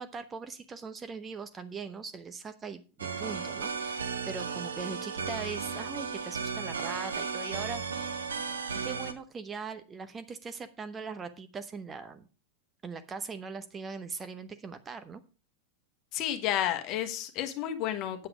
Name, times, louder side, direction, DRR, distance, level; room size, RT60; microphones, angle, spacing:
voice 1, 0.0-7.8 8.8-12.3 12.8-15.2, right 5 dB, 20° right, 10 dB, 0.8 m, -40 dB
sound 1, 3.0-9.1, right 5 dB, 70° right, 1.0 m, -35 dB
voice 2, 16.1-18.3, left 11 dB, 40° left, 7 dB, 1.3 m, -31 dB
8.6 x 7.9 x 4.9 m, 0.36 s
figure-of-eight pair, 90°, 0 cm